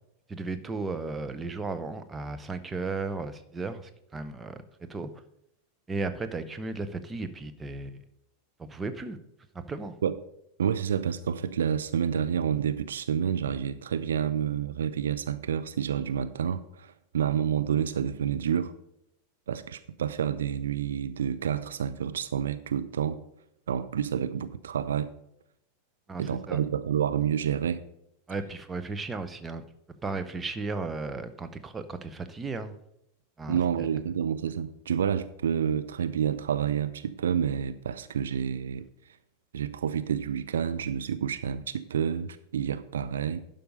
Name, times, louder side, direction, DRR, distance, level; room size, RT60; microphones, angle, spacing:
voice 1, 0.3-5.1 5.9-8.0 8.6-9.2 9.5-10.0 26.1-26.6 28.3-29.6 30.0-32.7 33.4-33.9, right 3 dB, 15° right, 9 dB, 0.8 m, -35 dB
voice 2, 10.6-18.7 19.5-23.2 23.7-25.1 26.2-27.8 33.5-38.9 39.5-43.4, right 8 dB, 65° right, 12 dB, 0.4 m, -29 dB
11.5 x 5.3 x 5.1 m, 0.79 s
figure-of-eight pair, 90°, 0 cm